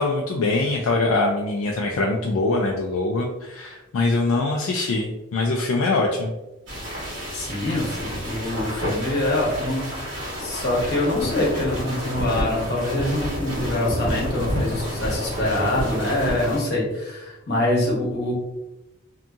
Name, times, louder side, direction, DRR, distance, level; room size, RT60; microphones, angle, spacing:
voice 1, 0.0-6.3, left 2 dB, 70° left, 0 dB, 0.3 m, -23 dB
sound 1, 6.7-16.6, equal, 60° right, 1.1 m, -29 dB
voice 2, 7.3-9.9 10.4-18.3, left 1 dB, 50° left, -4 dB, 0.9 m, -25 dB
2.7 x 2.5 x 2.3 m, 0.96 s
head